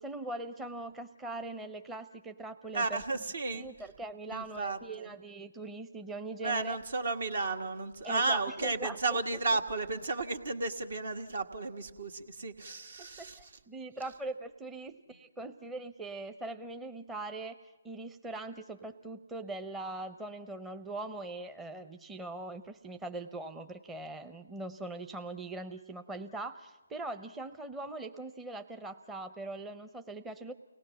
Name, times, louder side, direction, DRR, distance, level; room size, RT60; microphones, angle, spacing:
voice 1, 0.0-3.0 3.5-6.8 8.0-9.4 13.0-17.6 17.8-30.5, right 2 dB, 10° right, 8 dB, 0.7 m, -41 dB
voice 2, 2.7-3.7 4.3-5.1 6.4-13.4, right 3 dB, 65° right, 7 dB, 1.8 m, -33 dB
30.0 x 19.5 x 5.8 m, 1.2 s
figure-of-eight pair, 150°, 0 cm